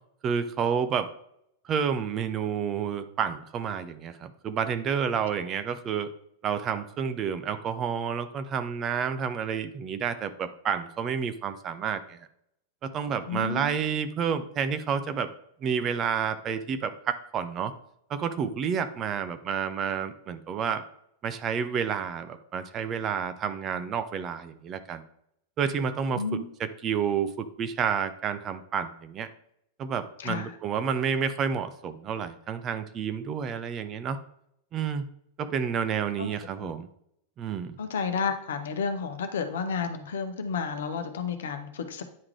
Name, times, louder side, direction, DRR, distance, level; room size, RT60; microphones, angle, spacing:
voice 1, 0.2-1.1 1.6-6.1 6.4-12.2 12.8-15.3 15.6-17.7 18.1-20.8 21.2-25.0 25.6-26.2 26.6-29.3 29.8-34.2 34.7-35.1 35.4-36.9 37.4-37.8, right 7 dB, 30° right, 10 dB, 0.6 m, -30 dB
voice 2, 13.3-13.7 26.1-26.5 30.2-30.5 36.2-36.3 37.8-42.0, left 5 dB, 60° left, 7 dB, 0.8 m, -31 dB
9.5 x 3.6 x 3.3 m, 0.72 s
figure-of-eight pair, 90°, 0 cm